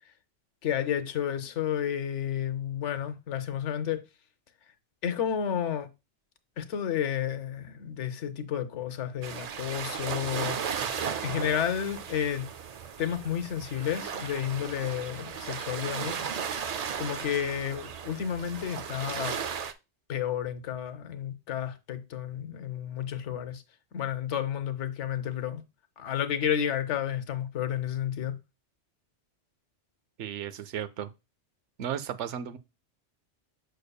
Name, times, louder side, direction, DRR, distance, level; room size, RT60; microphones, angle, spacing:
voice 1, 0.6-4.0 5.0-5.9 6.6-10.8 11.2-12.5 13.0-16.2 17.0-19.4 20.1-23.6 23.9-25.6 26.0-28.4, left 9 dB, 90° left, 1.1 m, -31 dB
sound 1, 9.2-19.7, right 7 dB, 60° right, 0.4 m, -36 dB
voice 2, 30.2-31.1 31.8-32.6, right 9 dB, 90° right, 0.9 m, -34 dB
6.7 x 6.3 x 2.2 m
omnidirectional pair, 1.2 m